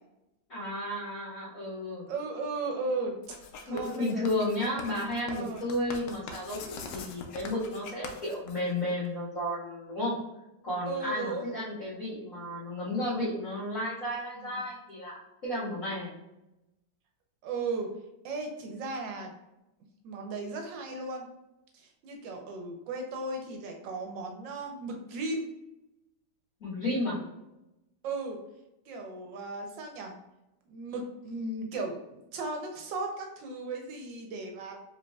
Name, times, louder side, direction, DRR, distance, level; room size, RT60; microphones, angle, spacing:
voice 1, 0.5-2.1 3.7-10.1 10.6-16.1 26.6-27.2, left 1 dB, 45° left, -12 dB, 1.8 m, -33 dB
voice 2, 2.1-3.2 3.7-4.2 5.3-5.6 10.9-11.4 14.3-14.6 17.4-17.9 18.2-19.3 20.0-21.3 21.7-25.5 28.0-28.4 28.9-30.1 30.7-34.8, right 3 dB, 75° right, 3 dB, 1.4 m, -36 dB
Writing, 3.2-9.1, left 4 dB, 75° left, 1.3 m, -43 dB
5.0 x 3.6 x 2.3 m, 0.94 s
omnidirectional pair, 2.0 m